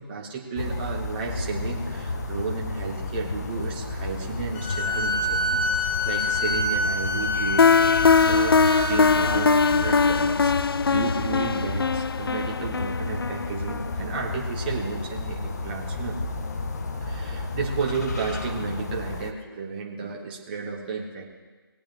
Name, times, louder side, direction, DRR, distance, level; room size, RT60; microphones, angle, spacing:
voice 1, 0.0-16.2 17.0-21.2, right 4 dB, 25° right, -2 dB, 2.3 m, -33 dB
sound 1, 0.6-19.3, left 3 dB, 45° left, 1.2 m, -32 dB
sound 2, 4.5-10.2, left 1 dB, 10° left, 0.7 m, -27 dB
sound 3, 7.6-14.4, left 5 dB, 75° left, 0.4 m, -21 dB
20.5 x 8.6 x 3.8 m, 1.4 s
figure-of-eight pair, 155°, 12 cm